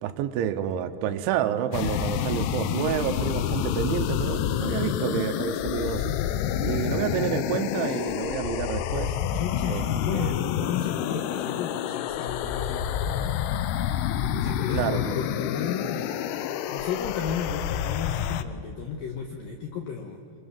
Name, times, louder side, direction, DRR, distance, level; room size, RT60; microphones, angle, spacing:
voice 1, 0.0-6.1 6.6-9.2 9.6-9.9 10.1-10.3 14.7-15.1, right 10 dB, 80° right, 9 dB, 3.2 m, -29 dB
sound 1, 1.7-18.4, left 10 dB, 85° left, 3.3 m, -28 dB
voice 2, 9.3-13.4 14.4-16.1 16.7-20.2, left 6 dB, 70° left, 2 dB, 2.3 m, -34 dB
28.5 x 23.5 x 7.2 m, 2.4 s
omnidirectional pair, 5.6 m